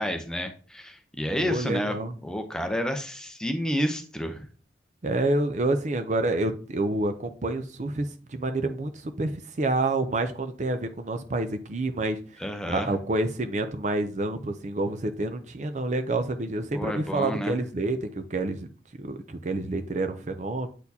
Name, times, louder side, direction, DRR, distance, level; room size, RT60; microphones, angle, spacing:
voice 1, 0.0-2.0 2.2-4.4 12.4-12.9 16.7-17.6, equal, 5° left, 5 dB, 0.6 m, -30 dB
voice 2, 1.4-2.1 5.0-12.2 12.7-18.7 19.0-20.7, right 2 dB, 40° right, 8 dB, 0.5 m, -28 dB
8.1 x 4.2 x 2.8 m, 0.39 s
head